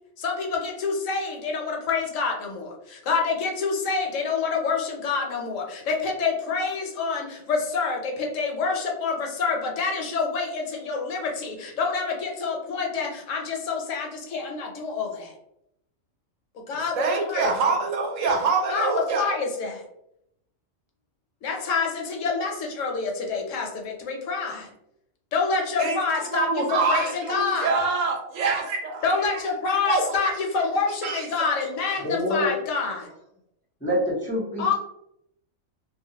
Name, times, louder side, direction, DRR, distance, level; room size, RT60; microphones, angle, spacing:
voice 1, 0.2-15.3 16.5-17.5 18.7-19.8 21.4-24.7 25.3-27.7 29.0-33.1 34.6-34.7, left 4 dB, 75° left, 1 dB, 0.9 m, -27 dB
voice 2, 16.7-19.2 25.8-26.0 26.2-29.0 29.3-29.4 29.9-30.3 31.0-31.5, right 4 dB, 75° right, 1 dB, 0.9 m, -25 dB
voice 3, 32.0-32.5 33.8-34.7, left 1 dB, 15° left, -7 dB, 0.5 m, -26 dB
2.3 x 2.1 x 2.7 m, 0.78 s
omnidirectional pair, 1.4 m